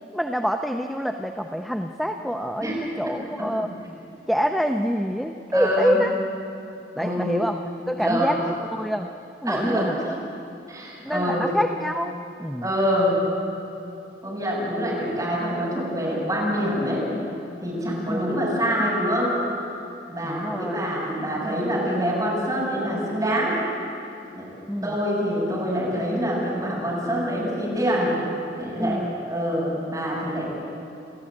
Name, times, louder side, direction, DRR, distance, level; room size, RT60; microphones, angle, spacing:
voice 1, 0.1-3.7 4.3-6.1 7.0-7.6 7.9-9.1 9.4-10.2 11.0-12.7 18.1-18.3 20.2-20.9 24.7-25.0 28.8-29.2, equal, ahead, 4 dB, 0.6 m, -26 dB
voice 2, 5.5-6.0 7.0-7.4 8.0-8.4 9.5-9.9 10.7-11.5 12.6-13.2 14.2-17.1 17.6-19.3 20.1-23.6 24.3-24.5 24.8-28.2 28.6-29.0 29.3-30.5, equal, 20° right, -6 dB, 7.2 m, -25 dB
29.5 x 13.5 x 8.7 m, 2.7 s
head